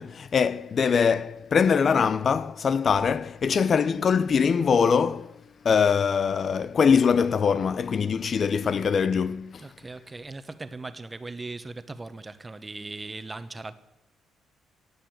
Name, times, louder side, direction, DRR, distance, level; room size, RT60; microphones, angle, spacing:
voice 1, 0.0-9.7, left 6 dB, 50° left, 0.5 m, -23 dB
voice 2, 9.6-13.7, right 3 dB, 20° right, 1.1 m, -39 dB
18.0 x 6.8 x 8.0 m
cardioid pair, 90°, 0 cm